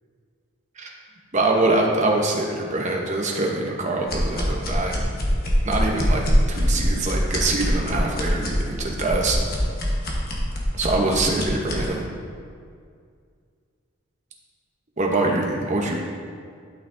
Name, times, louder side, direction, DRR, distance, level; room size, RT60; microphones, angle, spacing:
voice 1, 1.3-5.1 5.6-9.4 10.8-12.1 15.0-16.0, right 2 dB, 35° right, -1 dB, 0.9 m, -24 dB
sound 1, 4.1-11.9, equal, 45° left, 1.2 m, -24 dB
11.5 x 5.8 x 2.7 m, 2.2 s
head